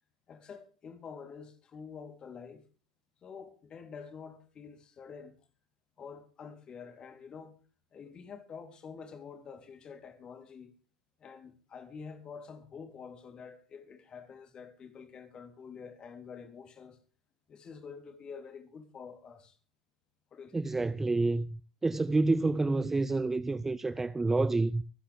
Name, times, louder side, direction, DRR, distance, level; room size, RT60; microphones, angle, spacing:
voice 1, 0.3-2.6 3.2-5.3 6.0-7.6 7.9-10.7 11.2-17.0 17.5-19.6 20.3-20.6, left 6 dB, 25° left, 3.6 m, -47 dB
voice 2, 20.5-21.5 21.8-24.8, right 3 dB, 10° right, 0.6 m, -28 dB
24.5 x 10.0 x 3.5 m
figure-of-eight pair, 85°, 3 cm